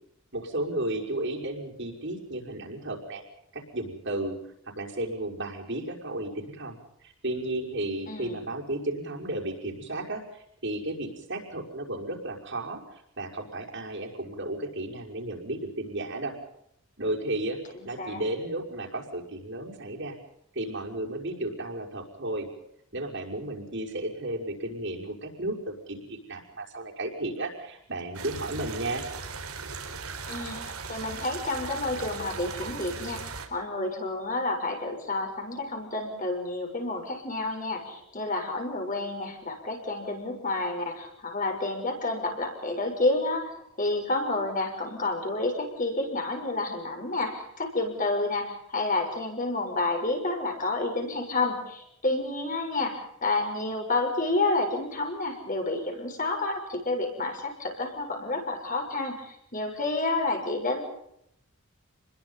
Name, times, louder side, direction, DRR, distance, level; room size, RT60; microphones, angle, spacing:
voice 1, 0.3-3.2 3.5-4.4 4.6-16.4 17.0-17.6 17.8-20.2 20.5-22.5 22.9-29.0, right 1 dB, 55° right, 0 dB, 5.6 m, -33 dB
voice 2, 8.1-8.4 17.7-18.2 30.3-60.8, left 2 dB, 35° left, 3 dB, 6.3 m, -30 dB
sound 1, 28.1-33.5, right 4 dB, 80° right, 4.5 m, -38 dB
29.5 x 21.5 x 5.6 m, 0.76 s
head